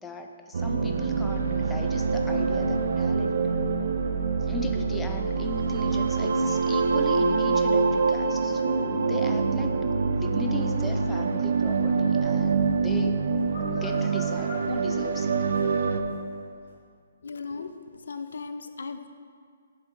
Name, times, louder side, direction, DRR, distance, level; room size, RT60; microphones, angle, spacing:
voice 1, 0.0-3.4 4.4-9.8 10.0-13.2 13.7-15.3, left 3 dB, 5° left, 4 dB, 0.3 m, -38 dB
sound 1, 0.5-16.0, right 4 dB, 60° right, 0.5 m, -25 dB
sound 2, 11.8-16.2 16.7-16.8, equal, 50° left, 1.6 m, -42 dB
voice 2, 17.2-19.1, left 4 dB, 75° left, 8 dB, 0.4 m, -37 dB
7.1 x 3.6 x 5.2 m, 2.1 s
hypercardioid pair, 170°, 0 cm